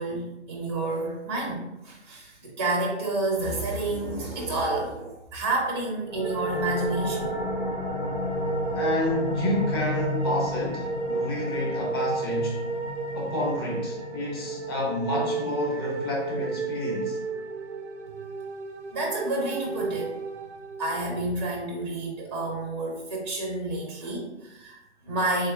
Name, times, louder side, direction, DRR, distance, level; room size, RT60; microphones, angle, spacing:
voice 1, 0.0-7.4 18.9-20.2 20.8-25.5, right 2 dB, 25° right, -1 dB, 0.4 m, -29 dB
voice 2, 3.9-4.2 8.7-12.7 13.1-17.2, left 1 dB, 20° left, -3 dB, 0.6 m, -30 dB
sound 1, 6.1-17.5, left 2 dB, 50° left, 0.9 m, -34 dB
sound 2, 6.2-21.4, right 4 dB, 90° right, 0.6 m, -33 dB
3.5 x 2.9 x 2.2 m, 0.93 s
figure-of-eight pair, 140°, 35 cm